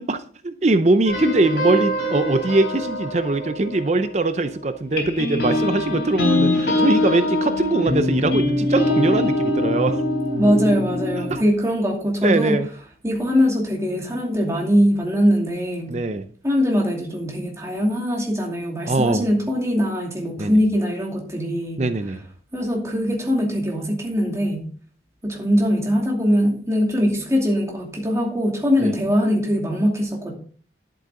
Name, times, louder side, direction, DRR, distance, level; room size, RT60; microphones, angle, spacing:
voice 1, 0.0-10.0 11.2-11.4 12.2-12.7 15.9-16.2 18.9-19.3 20.4-20.6 21.8-22.2 28.8-28.9, right 2 dB, 40° right, 10 dB, 0.6 m, -22 dB
sound 1, 1.0-4.5 4.9-11.4, left 1 dB, 65° left, 3.9 m, -23 dB
voice 2, 10.4-12.6 13.0-15.9 16.4-21.8 22.5-24.6 25.2-30.3, equal, 15° right, -1 dB, 2.6 m, -21 dB
11.0 x 7.8 x 3.8 m, 0.44 s
head